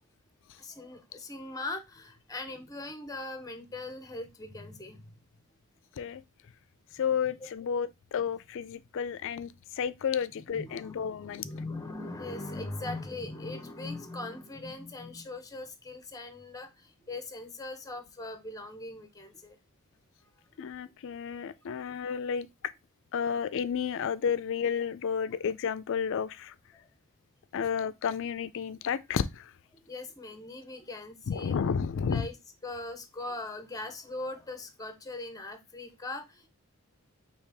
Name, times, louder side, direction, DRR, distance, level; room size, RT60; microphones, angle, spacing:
voice 1, 0.6-5.1 7.2-7.5 10.4-19.6 21.9-22.0 25.3-25.4 26.7-26.9 29.7-31.6 32.1-32.4 32.6-36.5, left 2 dB, 15° left, 0.7 m, -40 dB
voice 2, 7.0-9.5 9.8-11.4 20.6-22.5 23.1-26.5 27.5-29.4 31.3-32.2, left 7 dB, 60° left, 0.4 m, -31 dB
4.8 x 2.9 x 3.3 m
head